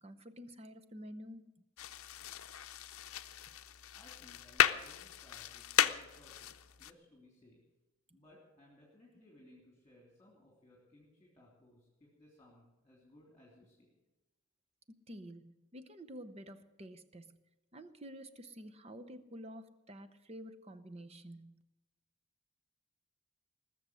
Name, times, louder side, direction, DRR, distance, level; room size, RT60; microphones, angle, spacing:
voice 1, 0.0-1.6 15.1-17.4 17.7-21.5, equal, 30° right, 10 dB, 0.8 m, -50 dB
sound 1, 1.8-6.9, left 10 dB, 70° left, 0.6 m, -35 dB
voice 2, 3.9-7.6 8.1-13.9, left 1 dB, 15° left, -2 dB, 3.2 m, -62 dB
20.0 x 6.9 x 9.8 m, 1.0 s
head